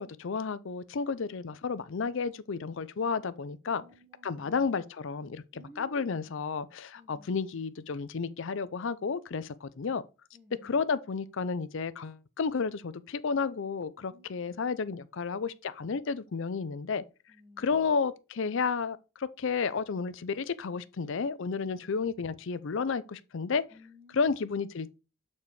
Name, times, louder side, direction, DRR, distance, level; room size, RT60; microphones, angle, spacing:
voice 1, 0.0-3.8 4.2-10.0 10.6-17.0 17.6-23.6 24.1-25.0, left 5 dB, 60° left, 0.5 m, -32 dB
voice 2, 3.7-4.7 5.5-6.3 6.9-7.4 10.3-10.8 14.1-14.8 17.3-17.9 23.7-24.4, left 1 dB, 10° right, 0.9 m, -55 dB
6.9 x 4.2 x 4.7 m
head